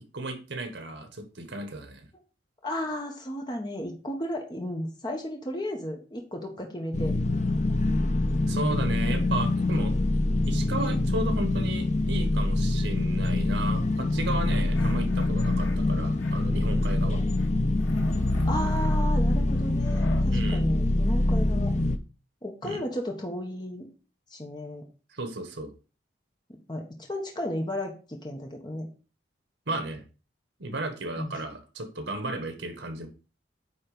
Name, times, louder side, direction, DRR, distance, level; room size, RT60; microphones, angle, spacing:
voice 1, 0.1-2.1 8.5-9.9 10.5-17.2 20.3-20.6 22.6-22.8 25.1-25.7 29.7-30.0 30.6-33.1, right 2 dB, 70° right, 7 dB, 1.5 m, -34 dB
voice 2, 2.6-7.1 9.0-9.4 18.4-21.7 22.4-23.9 24.3-24.8 26.7-28.9 31.2-31.3, equal, 25° left, 2 dB, 1.3 m, -34 dB
sound 1, 6.9-22.0, left 2 dB, 40° left, 0.6 m, -25 dB
sound 2, 14.5-15.8 16.2-17.1 17.3-20.3, left 3 dB, 90° left, 1.3 m, -46 dB
9.1 x 3.5 x 5.1 m, 0.34 s
head